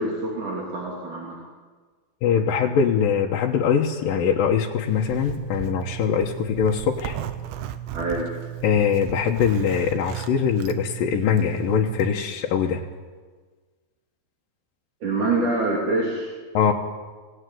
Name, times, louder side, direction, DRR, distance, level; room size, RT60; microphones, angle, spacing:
voice 1, 0.0-1.4 7.9-8.3 15.0-16.3, right 2 dB, 55° right, -2 dB, 4.6 m, -25 dB
voice 2, 2.2-7.2 8.6-12.8 16.5-16.7, left 7 dB, 70° left, -1 dB, 2.8 m, -22 dB
Zipper (clothing), 4.9-12.1, right 11 dB, 90° right, 3.1 m, -35 dB
24.5 x 18.5 x 9.4 m, 1.5 s
omnidirectional pair, 4.5 m